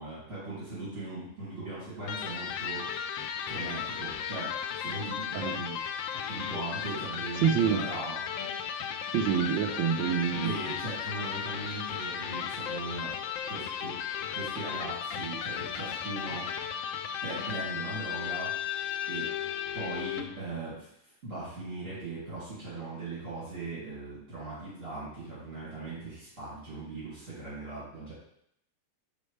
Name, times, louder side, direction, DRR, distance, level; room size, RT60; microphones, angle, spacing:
voice 1, 0.0-3.2 3.5-5.8 6.3-8.2 10.4-13.1 13.5-14.0 14.3-16.6 17.2-18.5 19.1-19.3 19.7-20.9 21.2-28.1, right 2 dB, 40° right, -11 dB, 3.2 m, -39 dB
Electric guitar, 2.0-20.4, left 8 dB, 80° left, 1.3 m, -35 dB
voice 2, 7.4-7.8 9.1-10.5, right 8 dB, 90° right, 5 dB, 1.5 m, -26 dB
6.9 x 5.4 x 3.2 m, 0.72 s
omnidirectional pair, 2.0 m